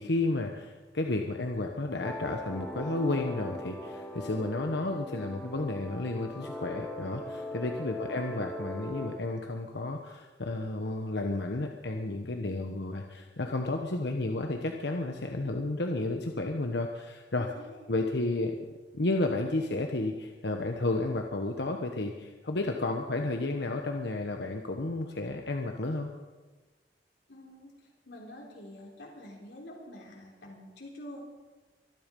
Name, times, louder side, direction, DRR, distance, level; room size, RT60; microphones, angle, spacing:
voice 1, 0.0-17.5 17.9-18.6 18.9-26.1, left 2 dB, 70° left, 3 dB, 1.2 m, -32 dB
sound 1, 2.0-9.2, left 1 dB, 5° left, 1.7 m, -40 dB
voice 2, 17.4-17.8 27.3-31.2, left 1 dB, 90° left, -2 dB, 3.8 m, -47 dB
24.0 x 10.5 x 5.4 m, 1.3 s
head